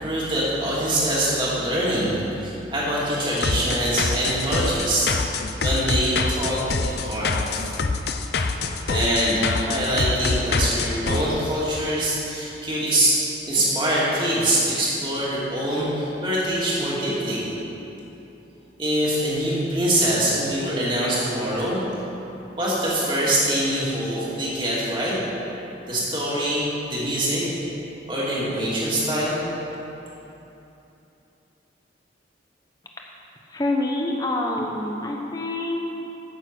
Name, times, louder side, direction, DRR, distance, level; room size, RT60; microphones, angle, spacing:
voice 1, 0.0-5.1 5.6-7.6 8.9-17.4 18.8-21.8 22.6-25.2 25.9-27.5 28.1-29.4, right 1 dB, 25° right, -7 dB, 2.5 m, -24 dB
sound 1, 3.4-11.2, left 3 dB, 55° left, 0.6 m, -25 dB
voice 2, 33.5-36.1, left 1 dB, 20° left, 0 dB, 0.9 m, -26 dB
9.3 x 8.6 x 6.0 m, 3.0 s
head